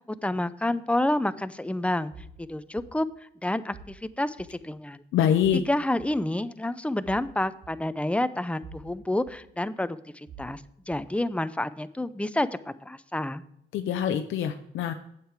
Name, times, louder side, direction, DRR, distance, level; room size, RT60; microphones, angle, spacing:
voice 1, 0.1-2.1 2.4-3.1 3.4-5.0 5.5-10.6 10.9-13.4, left 1 dB, 5° left, 13 dB, 0.5 m, -29 dB
sound 1, 2.1-2.4 2.8-2.9 3.7-4.0 4.4-4.5 5.4-5.6 6.0-6.1 7.0-7.3 7.6-7.7 8.6-8.9 9.3-9.4 10.3-10.5 10.9-11.0, right 4 dB, 65° right, 1.8 m, -46 dB
voice 2, 5.1-5.6 13.7-14.9, left 9 dB, 80° left, 7 dB, 0.6 m, -24 dB
8.4 x 8.0 x 4.7 m, 0.75 s
cardioid pair, 90°, 20 cm